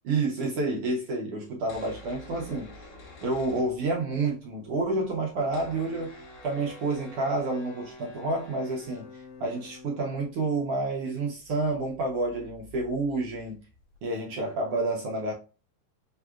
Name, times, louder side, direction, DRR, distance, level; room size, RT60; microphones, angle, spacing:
voice 1, 0.0-2.7 3.2-13.6 14.0-15.3, right 2 dB, 80° right, 1.3 m, -29 dB
sound 1, 1.6-4.3 4.5-4.6 4.8-14.2, left 2 dB, 75° left, 3.0 m, -49 dB
6.1 x 2.8 x 2.4 m
omnidirectional pair, 3.6 m